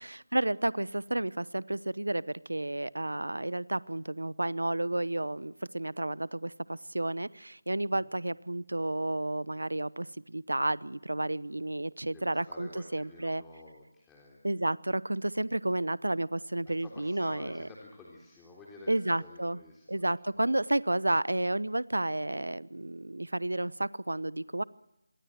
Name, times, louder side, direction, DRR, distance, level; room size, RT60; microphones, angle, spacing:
voice 1, 0.0-13.4 14.4-17.7 18.9-19.6 19.9-24.6, right 1 dB, 85° right, 20 dB, 0.9 m, -31 dB
voice 2, 12.0-14.4 16.6-20.1 20.3-20.4, left 2 dB, 10° left, -3 dB, 3.6 m, -51 dB
27.5 x 22.5 x 7.7 m, 0.86 s
figure-of-eight pair, 160°, 0 cm